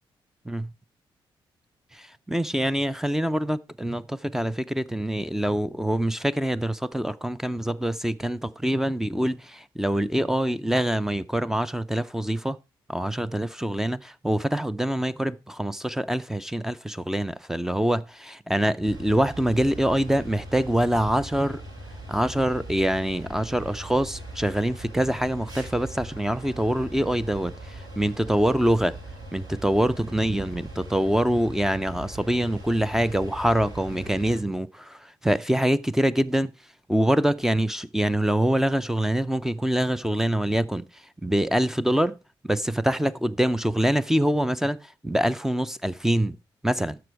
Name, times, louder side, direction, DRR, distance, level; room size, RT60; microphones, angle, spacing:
voice 1, 1.9-12.6 12.9-21.6 22.1-28.9 29.3-36.5 36.9-40.8 41.2-42.2 42.4-46.4 46.6-47.0, right 1 dB, 5° right, 0.4 m, -25 dB
sound 1, 18.8-34.4, right 1 dB, 45° right, 7.6 m, -40 dB
11.5 x 6.9 x 4.5 m
cardioid pair, 125°, 9 cm